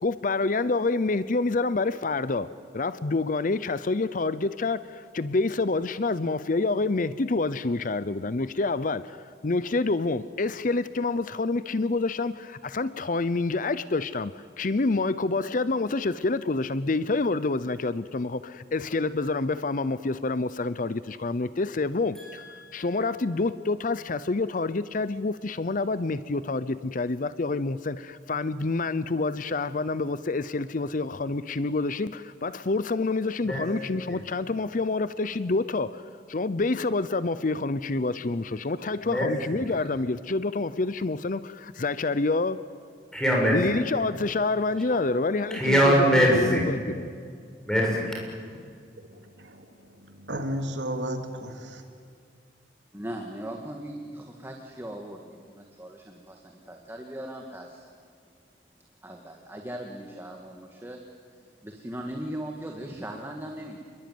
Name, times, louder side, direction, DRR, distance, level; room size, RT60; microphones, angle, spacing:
voice 1, 0.0-2.5 2.7-42.6 43.5-45.8 46.4-46.6, left 3 dB, 45° left, 15 dB, 0.6 m, -27 dB
voice 2, 22.1-23.0 33.4-33.7 34.1-34.2 39.0-39.7 43.1-43.8 44.5-46.7 47.6-48.6, equal, 5° left, -2 dB, 7.0 m, -25 dB
voice 3, 49.0-51.8, equal, 80° right, 5 dB, 3.0 m, -34 dB
voice 4, 52.9-57.9 59.0-61.0 61.6-63.8, right 1 dB, 15° right, 2 dB, 2.0 m, -39 dB
28.5 x 22.0 x 9.4 m, 2.1 s
head